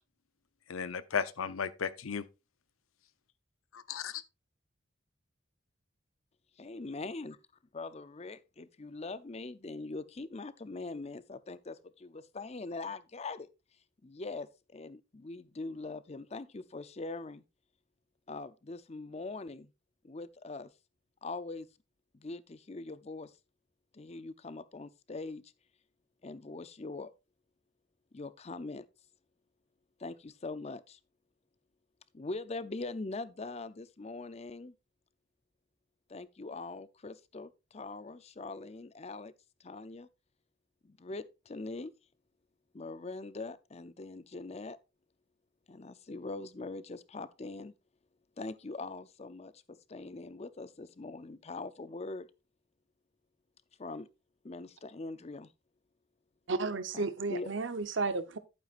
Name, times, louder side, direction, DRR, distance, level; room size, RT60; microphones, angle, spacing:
voice 1, 0.7-2.2 3.7-4.2, left 6 dB, 85° left, 0.7 m, -35 dB
voice 2, 6.6-7.4 7.7-13.5 14.0-17.4 18.3-19.7 20.0-20.7 21.2-21.7 22.1-23.3 23.9-25.5 26.2-27.1 28.1-28.9 30.0-31.0 32.1-34.7 36.1-39.3 39.6-40.1 40.8-41.9 42.7-44.8 45.7-47.7 48.4-52.3 53.8-54.1 54.4-55.5 56.9-57.5, left 3 dB, 30° left, 0.5 m, -42 dB
voice 3, 56.5-58.4, right 3 dB, 65° right, 0.9 m, -33 dB
11.0 x 9.0 x 2.5 m
head